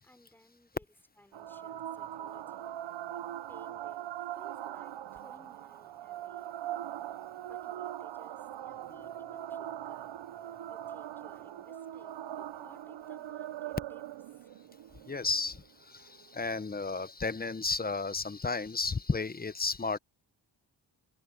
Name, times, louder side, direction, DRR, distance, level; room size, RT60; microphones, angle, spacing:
voice 1, 0.0-2.7 3.5-6.5 7.4-10.1 10.4-14.0 14.3-14.5, left 1 dB, 5° left, 5.6 m, -60 dB
sound 1, 1.3-16.3, right 12 dB, 80° right, 0.7 m, -41 dB
voice 2, 15.1-20.0, left 4 dB, 20° left, 0.7 m, -33 dB
open air
wide cardioid pair, 115°, 43 cm